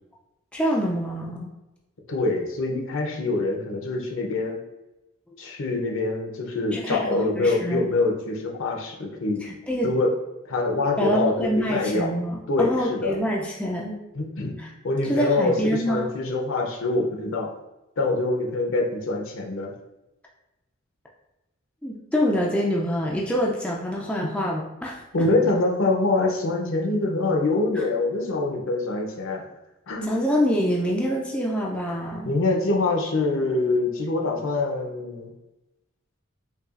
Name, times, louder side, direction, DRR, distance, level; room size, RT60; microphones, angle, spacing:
voice 1, 0.5-1.5 5.3-5.4 6.7-7.9 9.4-10.0 11.0-14.0 14.6-14.7 15.0-16.1 21.8-25.0 27.8-27.9 30.0-32.3, equal, 5° left, -3 dB, 0.3 m, -26 dB
voice 2, 2.1-4.6 5.4-9.4 9.8-10.2 10.4-12.1 12.5-13.2 14.1-17.5 18.0-19.7 24.2-24.3 25.1-29.5 29.9-30.1 32.3-35.3, left 2 dB, 60° left, 1 dB, 0.6 m, -25 dB
5.4 x 2.3 x 2.4 m, 0.98 s
head